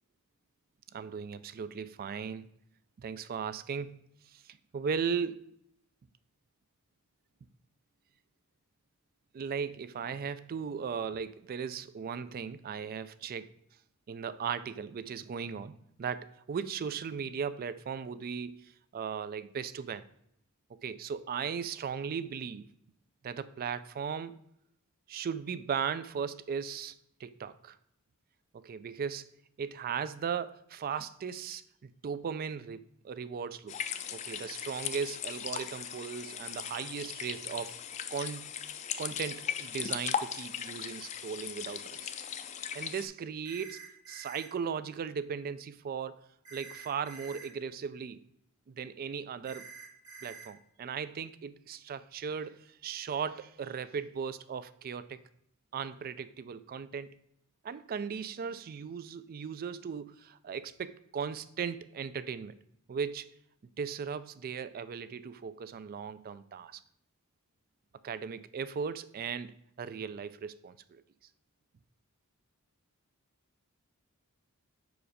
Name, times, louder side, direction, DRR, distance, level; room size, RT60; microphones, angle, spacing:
voice 1, 0.9-2.5 3.0-4.0 4.3-5.4 9.3-13.5 14.1-20.0 20.7-22.7 23.2-24.4 25.1-26.9 27.2-27.8 28.5-29.3 29.6-33.8 34.1-37.7 38.1-38.5 39.0-42.1 42.7-43.8 44.1-48.2 48.7-49.7 50.2-55.2 55.7-57.2 57.6-62.5 62.9-63.3 63.8-66.8 68.0-71.0, right 6 dB, 45° right, 15 dB, 0.3 m, -37 dB
sound 1, 33.7-43.1, left 8 dB, 30° left, 0.4 m, -38 dB
sound 2, 43.4-44.5 46.4-47.5 49.4-50.5, right 5 dB, 20° right, 1.1 m, -48 dB
5.1 x 4.9 x 4.9 m, 0.73 s
head